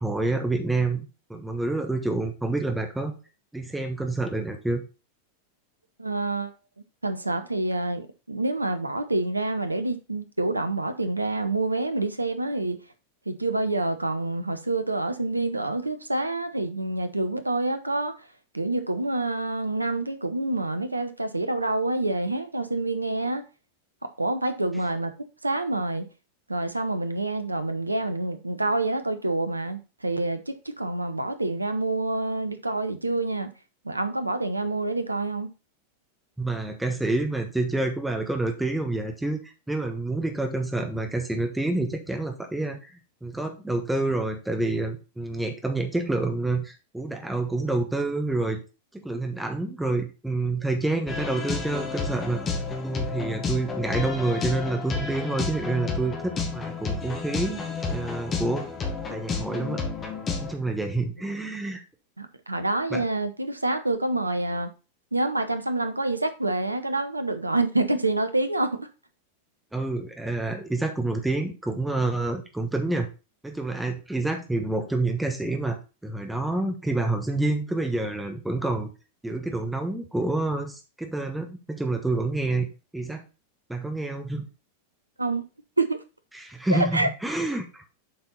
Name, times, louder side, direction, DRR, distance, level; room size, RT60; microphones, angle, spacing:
voice 1, 0.0-3.1 3.5-4.8 36.4-42.9 43.2-48.6 48.9-52.4 52.8-58.7 59.1-59.8 60.4-61.8 62.9-63.0 69.7-73.1 73.4-78.9 79.2-83.2 83.7-84.5 86.3-87.8, right 2 dB, 5° right, 1.3 m, -28 dB
voice 2, 6.0-6.5 7.0-12.8 13.3-18.1 18.5-23.4 24.0-25.1 25.4-26.1 26.5-33.5 33.8-35.5 62.2-64.7 65.1-68.8 85.2-85.4 85.8-86.0 86.7-87.1, right 2 dB, 85° right, 0.8 m, -27 dB
sound 1, 51.1-60.5, left 4 dB, 25° left, 1.7 m, -31 dB
7.7 x 4.4 x 4.1 m
figure-of-eight pair, 90°, 0 cm